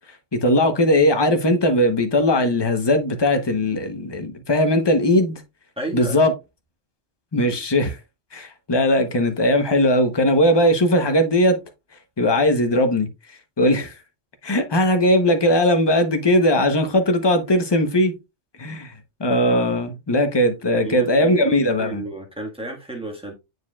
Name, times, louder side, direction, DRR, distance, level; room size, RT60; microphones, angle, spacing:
voice 1, 0.3-5.4 5.9-6.3 7.3-8.0 8.3-11.6 12.2-13.1 13.6-13.9 14.4-18.1 18.6-18.9 19.2-22.0, left 1 dB, 25° left, 0.9 m, -19 dB
voice 2, 5.8-6.3 20.8-23.3, right 2 dB, 5° right, 1.5 m, -32 dB
9.3 x 4.7 x 2.3 m
omnidirectional pair, 1.2 m